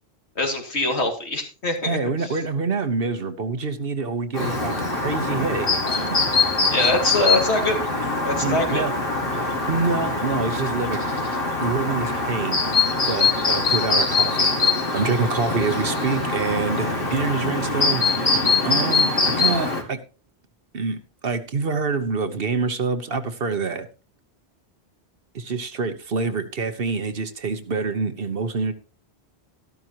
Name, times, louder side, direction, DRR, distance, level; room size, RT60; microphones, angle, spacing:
voice 1, 0.4-2.4 6.7-7.8 8.2-8.8, left 2 dB, 80° left, 2 dB, 2.7 m, -23 dB
voice 2, 1.8-6.5 8.4-8.9 9.7-11.0 11.6-14.5 14.9-18.3 18.6-20.0 20.7-23.9 25.3-28.7, right 4 dB, 60° right, 10 dB, 1.3 m, -26 dB
Chirp tweet, 4.3-19.8, left 3 dB, 55° left, 2.1 m, -23 dB
13.0 x 12.5 x 3.0 m, 0.33 s
omnidirectional pair, 1.1 m